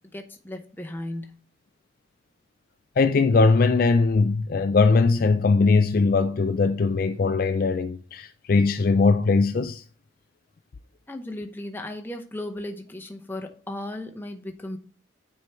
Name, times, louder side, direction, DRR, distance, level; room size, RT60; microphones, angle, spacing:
voice 1, 0.1-1.4 11.1-14.8, left 1 dB, 10° left, 0.8 m, -36 dB
voice 2, 3.0-9.8, left 4 dB, 45° left, 0.4 m, -20 dB
9.4 x 4.6 x 3.4 m
head